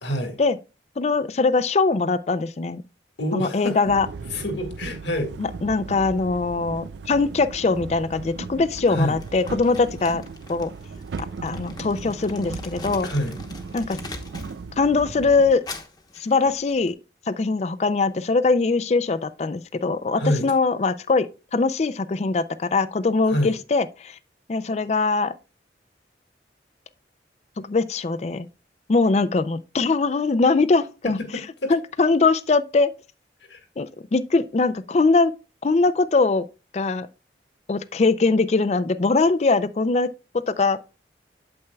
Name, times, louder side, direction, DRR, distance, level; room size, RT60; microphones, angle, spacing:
voice 1, 0.0-0.4 3.2-3.8 4.3-5.3 8.9-9.2 13.0-13.4 20.2-20.5 23.3-23.5 31.2-31.7 33.5-33.6, equal, 85° left, 1.8 m, -27 dB
voice 2, 1.0-2.8 3.3-4.1 5.4-10.2 10.5-10.7 11.4-13.1 13.7-14.0 14.8-15.6 16.2-17.0 17.3-24.2 24.5-25.3 27.6-28.5 28.9-31.2 31.7-32.9 33.8-35.3 35.6-36.4 36.7-37.1 37.7-40.1 40.5-40.8, left 3 dB, 35° left, 0.4 m, -21 dB
sound 1, 3.8-15.5, right 4 dB, 80° right, 0.4 m, -37 dB
Crumpling crinkling, 9.2-14.6 14.9-16.9, left 2 dB, 20° left, 0.9 m, -41 dB
8.6 x 7.8 x 2.3 m
head